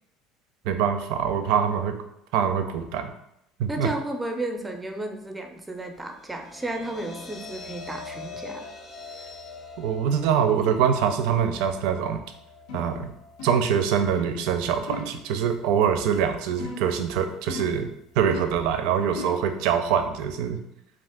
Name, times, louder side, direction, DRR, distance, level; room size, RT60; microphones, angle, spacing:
voice 1, 0.6-2.0 2.3-3.1 3.6-3.9 9.8-12.2 12.7-13.1 13.4-17.9 18.2-20.6, right 8 dB, 75° right, 7 dB, 0.4 m, -24 dB
voice 2, 3.7-8.7, right 1 dB, 10° right, 4 dB, 0.5 m, -33 dB
sound 1, 6.0-18.3, left 4 dB, 40° left, 0.6 m, -45 dB
sound 2, 12.7-13.0 13.4-13.7 14.1-14.4 14.9-15.2 16.6-17.0 17.5-17.8 18.3-18.6 19.1-19.5, left 4 dB, 85° left, 0.7 m, -37 dB
2.5 x 2.4 x 3.5 m, 0.78 s
supercardioid pair, 100°, 0 cm